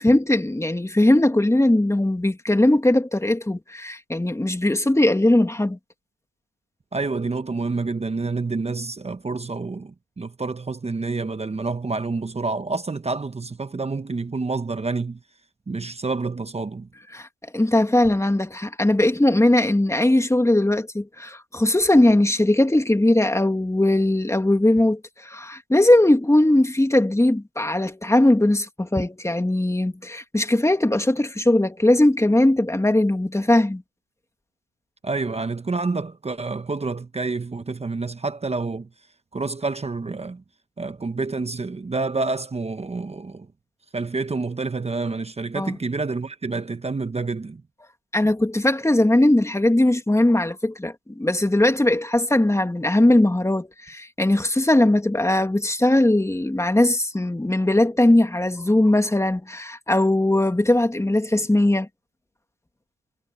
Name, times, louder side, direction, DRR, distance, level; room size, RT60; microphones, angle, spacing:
voice 1, 0.0-5.8 17.1-17.3 17.5-33.8 45.6-45.8 48.1-61.9, left 1 dB, 10° left, 2.6 m, -19 dB
voice 2, 6.9-15.2 15.7-16.9 35.0-38.9 39.3-40.4 40.8-43.5 43.9-47.6, right 3 dB, 20° right, 1.1 m, -28 dB
cardioid pair, 90°, 30 cm